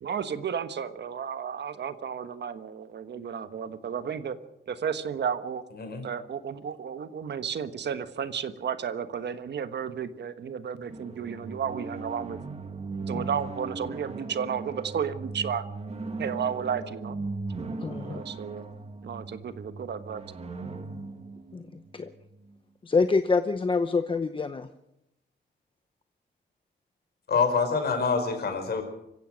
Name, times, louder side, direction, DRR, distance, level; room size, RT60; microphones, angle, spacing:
voice 1, 0.0-4.4 4.7-5.6 6.0-12.4 13.0-15.6 16.2-17.2 18.0-18.7 19.0-20.2, right 7 dB, 65° right, 11 dB, 1.3 m, -33 dB
voice 2, 5.7-6.0 27.3-28.8, left 5 dB, 55° left, 6 dB, 5.1 m, -26 dB
sound 1, 10.9-22.5, right 3 dB, 35° right, 2.0 m, -38 dB
voice 3, 17.8-18.2 21.5-22.1 22.8-24.7, left 4 dB, 25° left, 9 dB, 0.8 m, -26 dB
26.0 x 15.5 x 6.4 m, 0.84 s
wide cardioid pair, 160°, 19 cm